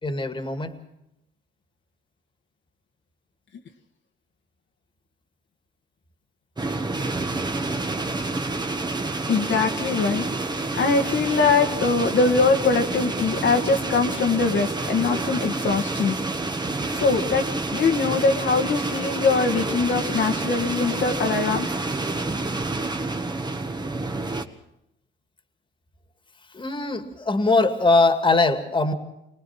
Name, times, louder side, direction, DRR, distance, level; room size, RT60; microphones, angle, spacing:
voice 1, 0.0-0.8 26.5-28.9, left 3 dB, 25° left, 8 dB, 2.1 m, -21 dB
sound 1, 6.6-24.5, right 2 dB, 20° right, 1.6 m, -28 dB
voice 2, 9.3-16.2 16.9-17.4 17.7-21.7, left 4 dB, 65° left, 3 dB, 1.8 m, -22 dB
24.0 x 19.0 x 5.9 m, 0.84 s
cardioid pair, 90°, 20 cm